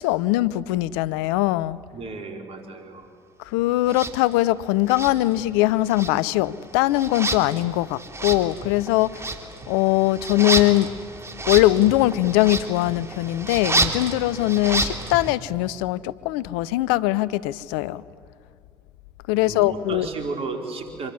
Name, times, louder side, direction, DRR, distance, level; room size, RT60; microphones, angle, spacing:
voice 1, 0.0-1.8 3.4-9.2 9.7-10.9 11.5-18.0 19.3-20.1, left 16 dB, 75° left, 18 dB, 0.6 m, -21 dB
voice 2, 1.9-3.1 19.3-21.1, right 3 dB, 50° right, 4 dB, 4.4 m, -34 dB
sound 1, 3.9-4.1 4.9-5.6 5.9-15.4, right 2 dB, 20° right, 2.9 m, -29 dB
25.5 x 22.5 x 9.9 m, 2.1 s
hypercardioid pair, 60°, 13 cm